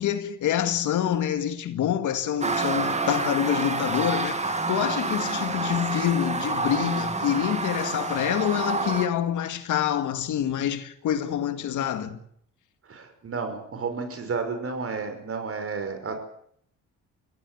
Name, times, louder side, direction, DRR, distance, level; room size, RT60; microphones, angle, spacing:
voice 1, 0.0-12.2, left 10 dB, 80° left, 2.1 m, -26 dB
sound 1, 2.4-9.1, right 3 dB, 20° right, 2.3 m, -28 dB
voice 2, 12.9-16.1, right 5 dB, 50° right, 5.6 m, -31 dB
23.5 x 17.0 x 8.0 m
cardioid pair, 90°, 30 cm